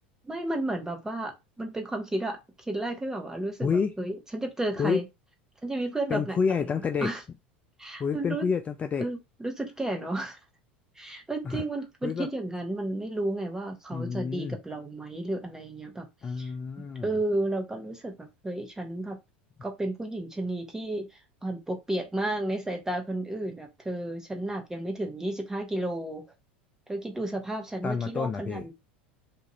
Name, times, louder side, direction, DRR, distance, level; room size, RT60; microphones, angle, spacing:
voice 1, 0.2-5.0 5.6-7.2 7.8-8.5 9.0-10.4 11.0-16.1 16.4-16.5 17.0-18.1 18.4-19.2 19.6-26.2 26.9-28.7, right 1 dB, 10° right, 1.0 m, -32 dB
voice 2, 3.6-3.9 4.8-5.0 6.1-7.1 8.0-9.1 11.4-11.6 12.0-12.3 13.9-14.6 16.2-17.1 27.8-28.6, left 6 dB, 25° left, 0.4 m, -28 dB
2.6 x 2.4 x 3.0 m
hypercardioid pair, 85°, 6 cm